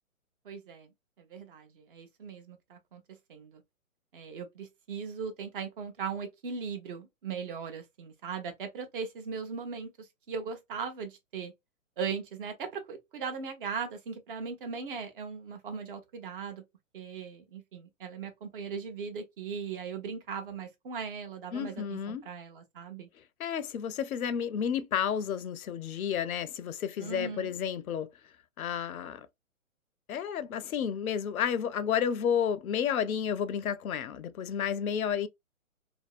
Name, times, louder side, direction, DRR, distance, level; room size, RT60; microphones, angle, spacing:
voice 1, 0.4-0.9 1.2-3.0 3.3-3.6 4.1-11.5 12.0-16.6 16.9-23.1 27.0-27.5, right 6 dB, 40° right, 0.8 m, -39 dB
voice 2, 21.5-22.2 23.4-28.1 28.6-29.3 30.1-35.3, left 8 dB, 85° left, 0.5 m, -31 dB
2.6 x 2.0 x 2.3 m
hypercardioid pair, 140°, 41 cm